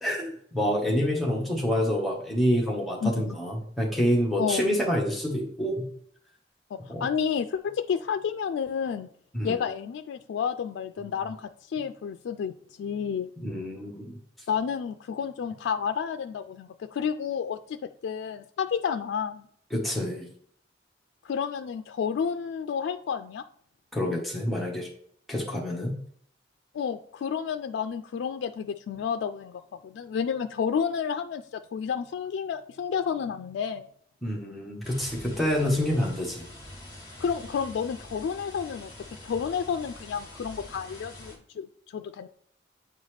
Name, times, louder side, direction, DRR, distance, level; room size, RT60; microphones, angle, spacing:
voice 1, 0.0-5.8 6.9-7.0 9.3-9.6 13.4-14.2 19.7-20.3 23.9-24.9 25.3-26.0 34.2-36.4, equal, ahead, -4 dB, 1.2 m, -27 dB
voice 2, 3.0-3.4 4.4-4.7 6.7-9.1 9.4-13.3 14.5-17.8 18.0-19.4 21.2-23.4 26.7-33.9 37.2-38.9 39.2-42.3, left 7 dB, 90° left, 9 dB, 0.3 m, -30 dB
sound 1, 34.8-41.4, left 1 dB, 20° left, 1.9 m, -45 dB
7.9 x 4.0 x 3.3 m, 0.62 s
head